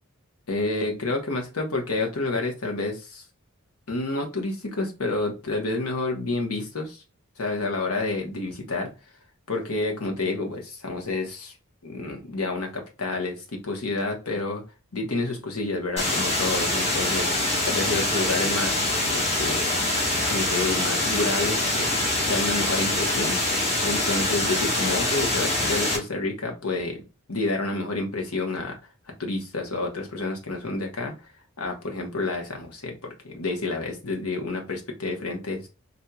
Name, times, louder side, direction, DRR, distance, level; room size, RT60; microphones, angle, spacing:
voice 1, 0.5-3.2 3.9-7.0 7.4-8.9 9.5-11.5 11.8-14.6 14.9-19.7 20.3-21.9 22.2-23.4 23.8-27.0 27.3-28.8 29.2-31.1 31.6-35.7, left 2 dB, 85° left, 2 dB, 1.1 m, -29 dB
sound 1, 16.0-26.0, left 1 dB, 30° left, 1.3 m, -24 dB
4.2 x 2.7 x 2.3 m, 0.31 s
head